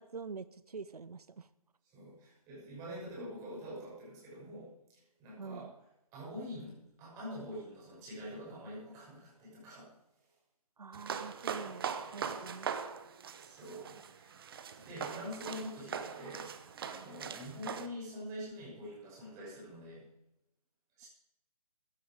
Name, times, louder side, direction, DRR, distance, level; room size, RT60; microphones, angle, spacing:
voice 1, 0.0-1.5 5.4-5.7 10.8-12.7, right 5 dB, 80° right, 15 dB, 0.7 m, -46 dB
voice 2, 1.8-5.8 6.1-9.9 12.2-12.4 13.4-14.3 14.8-16.5 16.8-20.1 21.0-21.1, equal, 15° right, -5 dB, 6.0 m, -45 dB
sound 1, 10.9-17.9, right 7 dB, 40° right, 1.0 m, -41 dB
15.0 x 10.0 x 5.1 m, 0.86 s
figure-of-eight pair, 145°, 19 cm